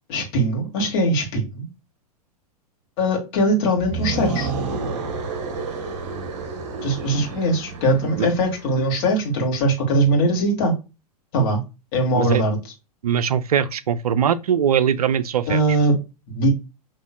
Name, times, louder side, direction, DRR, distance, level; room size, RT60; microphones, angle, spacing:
voice 1, 0.1-1.7 3.0-4.5 6.8-10.8 11.3-11.6 11.9-12.6 15.5-16.0 16.3-16.5, right 1 dB, 40° left, 1.7 m, -21 dB
sound 1, 3.8-8.8, right 4 dB, 50° right, 0.9 m, -30 dB
voice 2, 13.0-15.6, right 8 dB, 70° right, 0.4 m, -21 dB
5.6 x 3.0 x 2.2 m
figure-of-eight pair, 100°, 20 cm